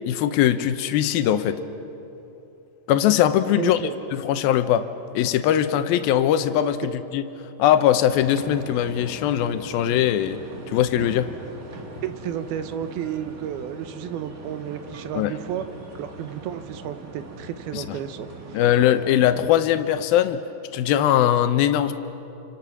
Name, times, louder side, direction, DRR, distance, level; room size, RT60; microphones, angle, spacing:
voice 1, 0.0-1.6 2.9-3.8 4.1-4.9 5.1-7.2 7.6-10.4 10.7-11.3 15.2-15.3 17.7-18.0 18.5-20.4 20.7-21.9, left 11 dB, 80° left, 10 dB, 2.7 m, -21 dB
voice 2, 3.6-4.0 12.0-15.6 16.0-18.6, right 9 dB, 85° right, 10 dB, 2.9 m, -32 dB
sound 1, 8.1-19.6, right 3 dB, 50° right, 1.0 m, -41 dB
28.5 x 26.0 x 6.1 m, 3.0 s
omnidirectional pair, 4.3 m